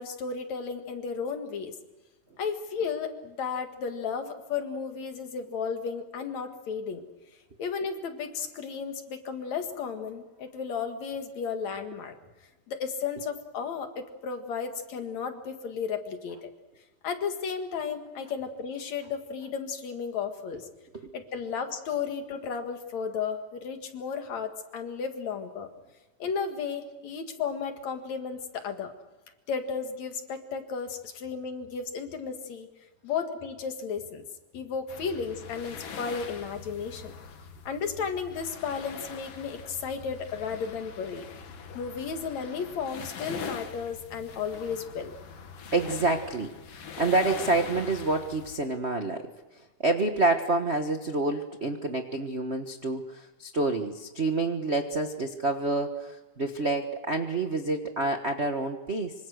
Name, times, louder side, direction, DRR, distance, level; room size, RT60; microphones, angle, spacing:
voice 1, 0.0-1.8 2.4-7.0 7.6-12.2 12.7-16.5 17.0-20.7 21.1-25.7 26.2-28.9 29.5-32.7 33.0-34.2 34.5-37.1 37.6-41.3 41.7-45.1, left 6 dB, 65° left, 6 dB, 3.1 m, -34 dB
sound 1, 34.9-48.6, left 6 dB, 90° left, 3.5 m, -43 dB
voice 2, 45.7-59.1, right 2 dB, 60° right, 5 dB, 0.6 m, -28 dB
25.5 x 25.5 x 6.4 m, 1.1 s
omnidirectional pair, 3.5 m